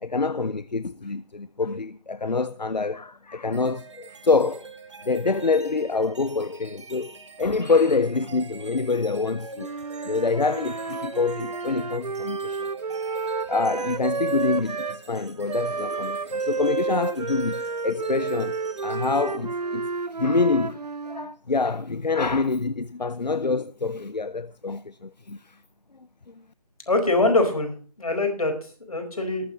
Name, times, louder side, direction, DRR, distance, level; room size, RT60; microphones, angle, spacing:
voice 1, 0.0-4.7 5.0-9.7 10.0-12.6 13.5-25.6 26.3-26.4, left 4 dB, 80° left, 0.6 m, -26 dB
sound 1, 3.5-20.2, right 4 dB, 45° right, 1.6 m, -43 dB
Wind instrument woodwind instrument, 9.5-15.0 15.5-21.3, right 4 dB, 70° right, 0.6 m, -31 dB
voice 2, 26.9-27.7 28.0-29.5, left 2 dB, 60° left, 4.8 m, -23 dB
20.5 x 8.9 x 3.2 m
figure-of-eight pair, 155°, 21 cm